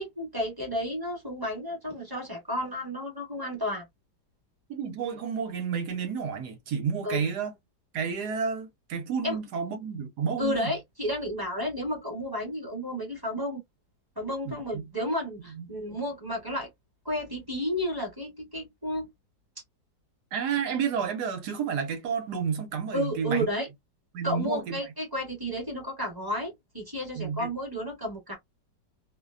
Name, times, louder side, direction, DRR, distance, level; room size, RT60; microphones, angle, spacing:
voice 1, 0.0-3.8 7.0-7.2 9.2-9.4 10.4-13.6 14.2-16.7 17.0-19.1 22.9-23.7 24.2-28.4, equal, 15° right, 1.0 m, -32 dB
voice 2, 4.7-7.5 7.9-10.7 14.4-14.8 15.5-15.7 20.3-23.5 24.1-24.8 27.2-27.5, right 6 dB, 70° right, 1.2 m, -31 dB
3.1 x 2.1 x 2.4 m
omnidirectional pair, 1.9 m